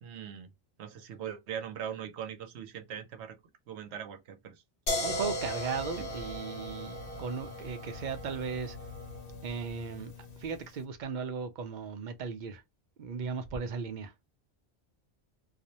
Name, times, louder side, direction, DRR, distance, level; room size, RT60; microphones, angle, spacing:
voice 1, 0.0-0.5 0.8-3.4 3.7-4.5 4.9-5.3, right 8 dB, 90° right, 0.9 m, -41 dB
sound 1, 4.9-10.7, left 1 dB, 60° left, 1.0 m, -38 dB
voice 2, 5.0-8.8 9.4-10.1 10.4-12.6 13.0-14.1, right 5 dB, 55° right, 0.6 m, -36 dB
2.4 x 2.0 x 2.7 m
omnidirectional pair, 1.1 m